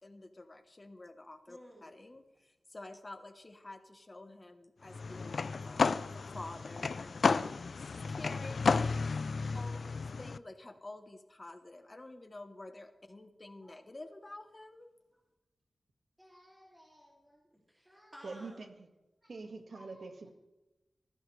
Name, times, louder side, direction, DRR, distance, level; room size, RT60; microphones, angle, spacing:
voice 1, 0.0-6.1 6.3-9.1 9.5-14.9, left 2 dB, 30° left, 7 dB, 1.1 m, -50 dB
voice 2, 1.5-1.9 13.6-13.7 16.2-18.6 19.2-19.5 19.7-20.0, equal, 10° right, -4 dB, 2.7 m, -57 dB
sound 1, 4.9-10.4, left 4 dB, 65° left, 0.4 m, -32 dB
voice 3, 18.2-18.7 19.3-20.3, right 3 dB, 65° right, 5 dB, 1.7 m, -44 dB
20.0 x 15.5 x 3.3 m, 1.0 s
wide cardioid pair, 120°, 0 cm